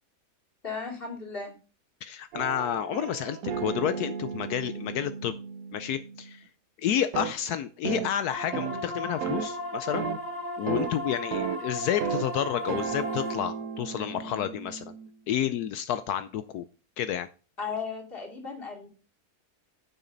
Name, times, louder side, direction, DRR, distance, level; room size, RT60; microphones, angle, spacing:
voice 1, 0.6-1.5 17.6-18.9, left 5 dB, 35° left, 1 dB, 2.9 m, -35 dB
voice 2, 2.0-5.4 5.7-6.5 6.8-10.1 10.6-14.8 15.3-16.6 17.0-17.3, left 10 dB, 75° left, 11 dB, 1.1 m, -30 dB
sound 1, 2.3-6.3 7.1-7.3 7.8-8.1 8.5-8.8 9.2-9.5 9.9-10.2 10.7-10.9 11.3-11.6 12.0-12.3 12.7-15.1, right 7 dB, 70° right, 1.1 m, -34 dB
sound 2, 8.3-13.4, left 1 dB, 15° left, 1.1 m, -36 dB
9.9 x 7.0 x 3.9 m, 0.35 s
omnidirectional pair, 1.7 m